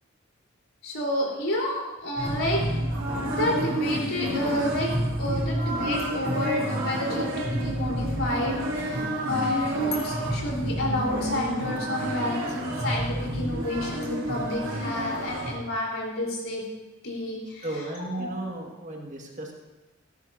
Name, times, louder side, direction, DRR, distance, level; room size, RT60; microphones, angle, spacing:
voice 1, 0.8-2.6 3.4-4.9 5.2-9.0 9.3-16.6 17.0-17.7 18.1-18.3, left 1 dB, 85° left, -2 dB, 3.9 m, -29 dB
sound 1, 2.2-15.5, equal, 70° right, 3.2 m, -29 dB
voice 2, 17.6-19.5, right 2 dB, 35° right, 0 dB, 1.8 m, -34 dB
17.0 x 13.0 x 2.7 m, 1.1 s
head